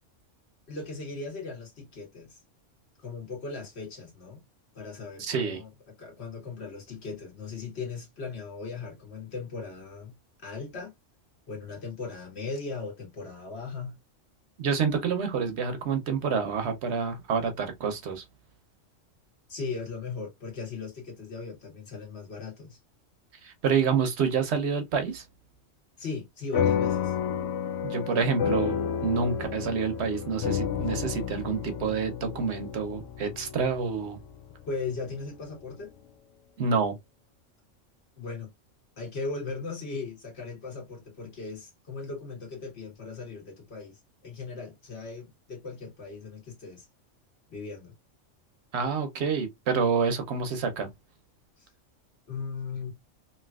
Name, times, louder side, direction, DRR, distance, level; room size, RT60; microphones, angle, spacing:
voice 1, 0.7-2.4 3.0-4.4 4.7-5.7 6.0-10.9 11.5-14.0 19.5-22.8 26.0-27.2 34.6-35.9 38.2-38.5 39.0-46.9 47.5-47.9 51.6-51.7 52.3-52.9, left 4 dB, 55° left, 1.5 m, -38 dB
voice 2, 5.2-5.6 14.6-18.2 23.4-25.2 27.8-34.2 36.6-36.9 48.7-50.9, right 5 dB, 65° right, 0.8 m, -28 dB
sound 1, 26.5-35.3, left 8 dB, 75° left, 0.9 m, -31 dB
3.2 x 2.7 x 2.2 m
omnidirectional pair, 1.3 m